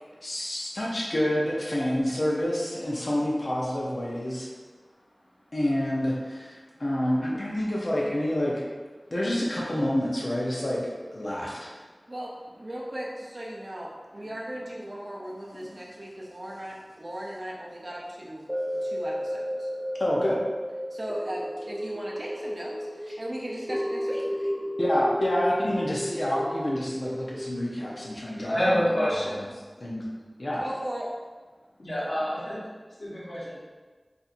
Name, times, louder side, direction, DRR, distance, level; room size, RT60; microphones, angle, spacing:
voice 1, 0.2-4.5 5.5-8.6 9.1-10.8 11.1-11.7 20.0-20.4 24.8-29.4 29.8-30.1 30.4-30.6, left 1 dB, 60° left, -5 dB, 0.7 m, -28 dB
voice 2, 12.6-19.7 20.9-24.5 30.6-31.1, right 1 dB, 50° right, -4 dB, 0.6 m, -37 dB
sound 1, 18.5-28.8 29.3-29.4, equal, 5° right, 0.5 m, -33 dB
voice 3, 28.5-29.5 31.8-32.6 33.0-33.6, equal, 75° left, -7 dB, 1.1 m, -27 dB
4.2 x 2.6 x 2.6 m, 1.4 s
wide cardioid pair, 55°, 0 cm